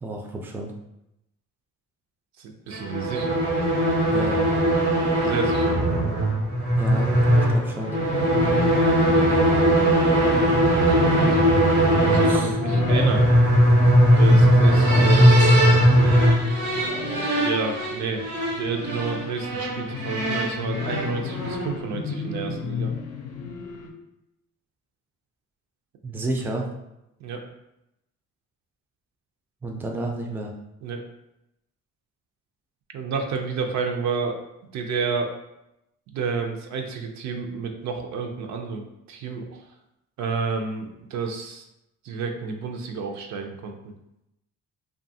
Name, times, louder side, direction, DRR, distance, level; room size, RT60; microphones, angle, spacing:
voice 1, 0.0-0.7 4.1-4.4 6.7-7.1 7.5-8.0 12.2-12.6 15.4-15.6 26.0-26.7 29.6-30.5, right 2 dB, 5° right, 2 dB, 0.3 m, -31 dB
voice 2, 2.4-3.4 5.2-5.8 8.9-9.7 10.6-11.4 12.0-13.3 14.2-15.2 17.4-18.3 18.5-22.9 27.2-27.4 30.8-31.0 32.9-34.4 34.7-35.3 36.1-39.6 40.2-41.6 42.0-43.9, right 5 dB, 65° right, 3 dB, 0.5 m, -30 dB
sound 1, 2.7-21.8, equal, 85° right, 1.0 m, -19 dB
sound 2, 7.9-23.9, left 5 dB, 85° left, 0.5 m, -33 dB
2.6 x 2.3 x 2.6 m, 0.87 s
cardioid pair, 90°, 30 cm